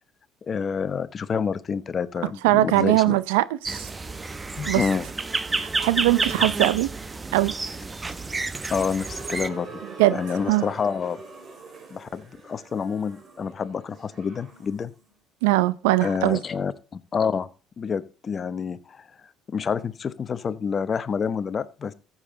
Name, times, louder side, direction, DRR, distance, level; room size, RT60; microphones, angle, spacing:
voice 1, 0.4-3.2 4.6-5.1 8.7-9.8 10.1-11.2 11.9-14.9 16.0-17.5 17.8-19.1 19.5-21.9, left 6 dB, 40° left, 0.8 m, -28 dB
voice 2, 2.4-3.9 4.7-4.8 5.5-6.9 7.3-7.5 10.0-10.2 10.5-10.7 15.4-16.4, right 17 dB, 80° right, 0.6 m, -21 dB
sound 1, 3.6-9.5, right 3 dB, 25° right, 0.9 m, -30 dB
sound 2, 9.0-14.9, right 4 dB, 40° right, 3.9 m, -43 dB
14.5 x 7.4 x 3.8 m
hypercardioid pair, 65°, 0 cm